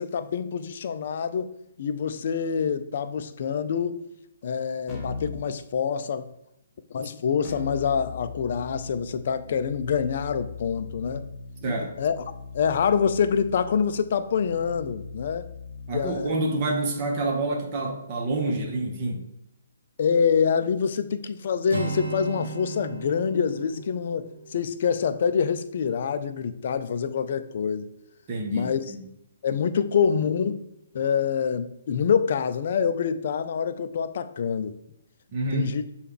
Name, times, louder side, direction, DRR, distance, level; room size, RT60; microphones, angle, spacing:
voice 1, 0.0-1.5 1.8-4.0 4.4-6.3 6.9-11.3 11.6-12.2 12.5-15.5 15.9-16.3 20.0-27.9 28.5-28.8 29.4-30.6 30.9-34.8 35.5-35.8, left 6 dB, 50° left, 11 dB, 0.3 m, -26 dB
Keyboard (musical), 4.9-5.4 7.4-16.3, left 4 dB, 10° left, 1.0 m, -39 dB
voice 2, 11.6-11.9 15.9-19.3 28.3-29.0 35.3-35.7, right 2 dB, 35° right, 1 dB, 0.8 m, -28 dB
Acoustic guitar, 21.7-25.6, right 4 dB, 75° right, 0.7 m, -36 dB
6.7 x 2.3 x 3.4 m, 0.80 s
figure-of-eight pair, 135°, 0 cm